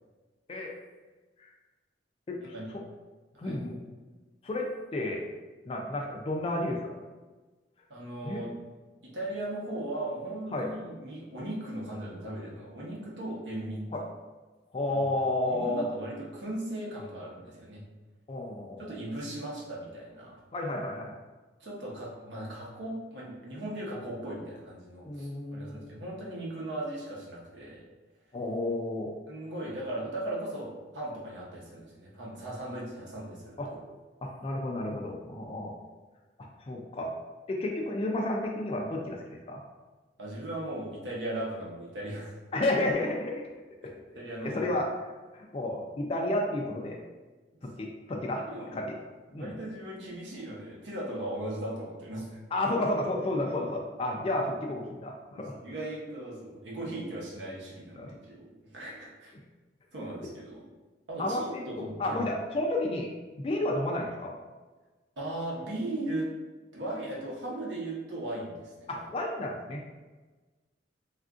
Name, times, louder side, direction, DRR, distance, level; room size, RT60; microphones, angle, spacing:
voice 1, 2.3-2.8 3.4-3.8 4.4-5.2 5.7-6.9 8.2-8.4 10.5-10.7 13.9-14.0 14.7-15.8 18.3-18.9 20.5-21.2 25.0-25.8 28.3-29.1 33.6-33.7 34.2-35.7 36.6-37.1 37.5-39.6 42.5-43.3 44.4-44.9 45.3-47.0 47.6-48.5 48.7-48.9 49.3-49.5 52.5-55.6 58.0-58.2 61.2-63.1 63.4-64.4 68.9-69.9, left 1 dB, 30° left, 0 dB, 0.3 m, -31 dB
voice 2, 7.9-8.5 9.0-13.8 14.9-15.1 15.5-17.8 18.8-20.4 21.6-27.8 29.3-33.8 40.2-42.4 44.1-44.8 48.3-48.7 49.4-52.4 55.3-58.5 58.7-59.3 59.9-60.6 61.1-62.2 65.2-66.3 66.7-69.0, right 1 dB, 75° right, -4 dB, 0.9 m, -38 dB
3.5 x 2.4 x 2.4 m, 1.2 s
head